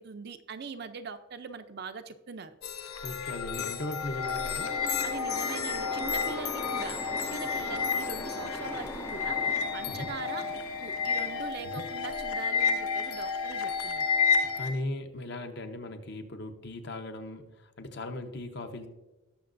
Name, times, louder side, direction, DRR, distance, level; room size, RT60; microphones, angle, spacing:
voice 1, 0.0-2.6 5.0-7.0 7.3-14.1, right 4 dB, 50° right, 9 dB, 0.5 m, -42 dB
sound 1, 2.6-14.7, left 5 dB, 85° left, 0.7 m, -31 dB
voice 2, 3.0-4.7 9.9-10.1 11.6-11.8 14.5-18.9, left 1 dB, 50° left, 6 dB, 0.9 m, -38 dB
sound 2, 3.6-11.5, left 1 dB, 10° left, 0.4 m, -42 dB
18.5 x 6.5 x 2.6 m, 1.1 s
head